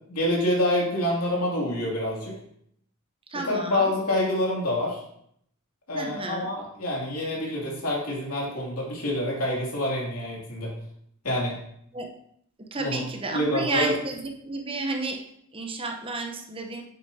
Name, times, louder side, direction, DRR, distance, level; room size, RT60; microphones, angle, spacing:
voice 1, 0.1-2.3 3.4-5.0 5.9-10.7 11.2-11.6 12.8-13.0 13.3-13.9, left 1 dB, 85° left, -3 dB, 2.6 m, -27 dB
voice 2, 3.3-3.9 5.9-6.5 11.9-12.1 12.6-15.2 15.5-16.8, right 3 dB, 25° right, 4 dB, 0.8 m, -31 dB
8.5 x 6.9 x 2.8 m, 0.69 s
head